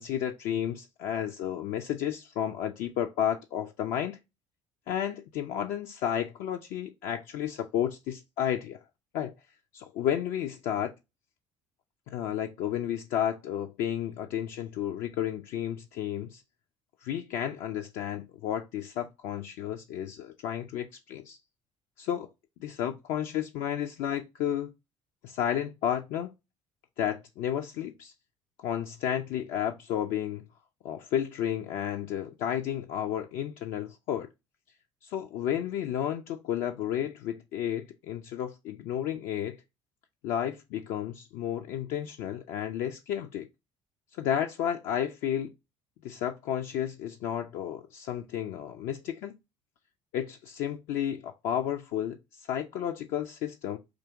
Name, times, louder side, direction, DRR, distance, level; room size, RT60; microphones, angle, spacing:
voice 1, 0.0-4.2 4.9-8.8 9.1-9.3 9.7-10.9 12.1-16.4 17.0-21.4 22.0-22.3 22.6-24.7 25.2-26.3 27.0-28.1 28.6-30.4 30.8-34.3 35.0-39.6 40.2-43.5 44.2-45.5 46.0-49.3 50.1-53.8, left 10 dB, 55° left, 0.4 m, -32 dB
3.8 x 2.8 x 3.4 m
figure-of-eight pair, 55°, 16 cm